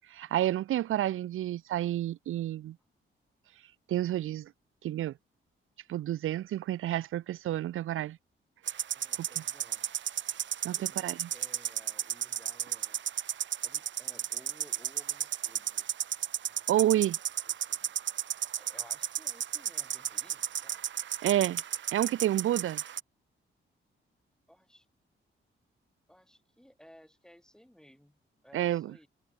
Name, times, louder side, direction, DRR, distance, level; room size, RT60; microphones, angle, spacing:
voice 1, 0.1-2.8 3.9-4.5 4.8-5.1 5.9-8.2 9.2-9.3 10.6-11.3 16.7-17.2 21.2-21.6 21.9-22.8 28.5-28.9, right 13 dB, 85° right, 0.5 m, -29 dB
sound 1, 8.7-23.0, right 10 dB, 65° right, 1.1 m, -34 dB
voice 2, 8.9-9.9 10.7-13.0 13.6-15.9 16.4-16.6 17.5-17.9 18.5-20.8 24.5-24.9 26.1-29.1, equal, 5° left, 5.8 m, -58 dB
wide cardioid pair, 140°, 21 cm